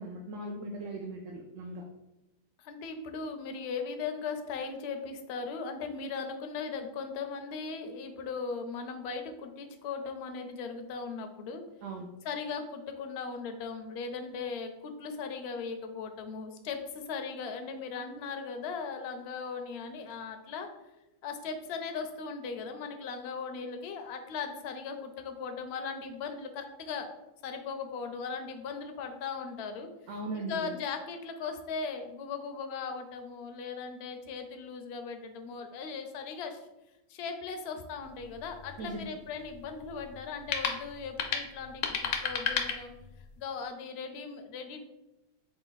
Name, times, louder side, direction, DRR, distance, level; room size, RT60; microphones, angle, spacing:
voice 1, 0.0-1.8 11.8-12.1 30.1-30.7 38.8-39.1, right 2 dB, 75° right, 1 dB, 0.9 m, -39 dB
voice 2, 2.6-11.6 12.2-20.7 21.2-27.1 27.4-29.9 30.3-36.6 37.1-42.9 43.4-44.8, left 5 dB, 65° left, 6 dB, 0.7 m, -38 dB
sound 1, 38.0-43.4, left 7 dB, 80° left, 1.0 m, -35 dB
4.0 x 2.3 x 3.9 m, 0.94 s
omnidirectional pair, 1.4 m